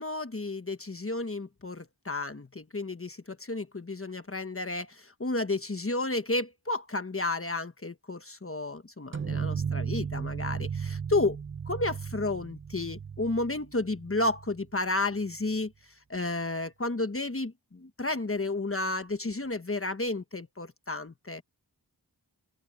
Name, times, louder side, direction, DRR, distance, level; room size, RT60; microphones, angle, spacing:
voice 1, 0.0-11.4 11.7-15.7 16.1-21.4, left 2 dB, 35° left, 1.2 m, -32 dB
sound 1, 9.1-14.7, right 6 dB, 35° right, 0.4 m, -35 dB
open air
wide cardioid pair, 60°, 39 cm